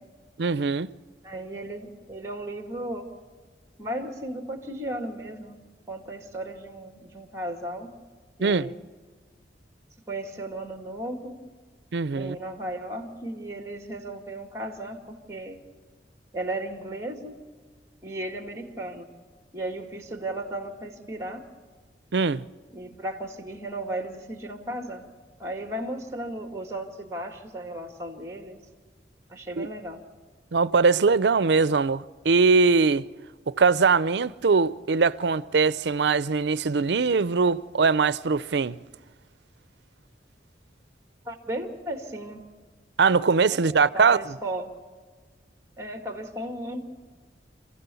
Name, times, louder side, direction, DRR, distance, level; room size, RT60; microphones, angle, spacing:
voice 1, 0.4-0.9 8.4-8.7 11.9-12.4 22.1-22.4 29.6-29.7 30.5-33.0 33.5-38.8 43.0-44.3, right 4 dB, 70° right, 0.5 m, -21 dB
voice 2, 1.2-3.0 3.8-5.6 5.9-7.9 8.4-8.8 10.1-11.4 12.1-15.6 16.3-17.4 18.0-19.1 19.5-21.4 22.7-25.1 25.4-28.6 29.3-30.0 41.3-42.4 43.5-44.7 45.8-46.9, right 1 dB, 15° right, 2.1 m, -35 dB
27.0 x 15.5 x 7.0 m
head